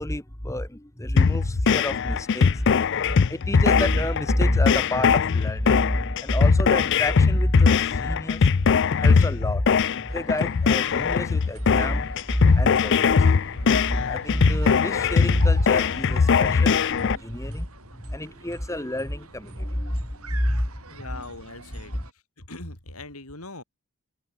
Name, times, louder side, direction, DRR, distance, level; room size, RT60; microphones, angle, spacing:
voice 1, 0.0-2.6 3.0-8.6 9.0-9.7 10.1-17.7 18.0-20.7, left 1 dB, 15° left, 1.5 m, -28 dB
sound 1, 1.2-17.2, left 5 dB, 55° left, 0.5 m, -21 dB
sound 2, 10.1-22.1, right 3 dB, 80° right, 5.5 m, -46 dB
voice 2, 20.9-22.0 22.4-23.6, left 2 dB, 80° left, 6.3 m, -40 dB
open air
head